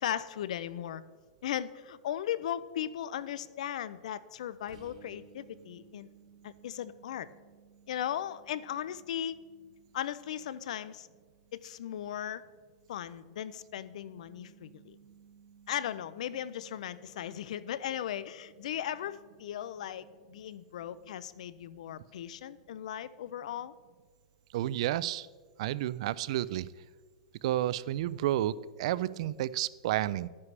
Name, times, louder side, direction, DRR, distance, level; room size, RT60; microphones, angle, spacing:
voice 1, 0.0-1.0 1.4-6.1 6.4-7.3 7.9-9.4 9.9-11.1 11.5-12.4 12.9-15.0 15.7-23.7, left 10 dB, 75° left, 17 dB, 0.5 m, -37 dB
sound 1, 4.7-22.2, right 6 dB, 85° right, 2.3 m, -61 dB
voice 2, 24.5-25.3 25.6-26.7 27.4-30.3, right 13 dB, 60° right, 18 dB, 0.3 m, -31 dB
11.0 x 9.6 x 3.3 m, 1.5 s
supercardioid pair, 145°, 4 cm